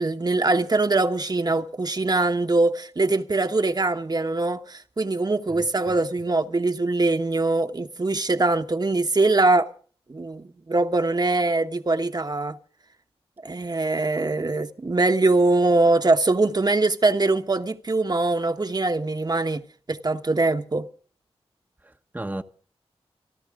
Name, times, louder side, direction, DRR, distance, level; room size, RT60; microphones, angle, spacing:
voice 1, 0.0-9.7 10.1-12.6 13.4-19.6 19.9-20.9, right 2 dB, 40° right, 1.2 m, -22 dB
voice 2, 5.5-5.9 21.8-22.4, right 1 dB, 15° right, 1.0 m, -35 dB
27.0 x 11.5 x 3.7 m
cardioid pair, 45°, 11 cm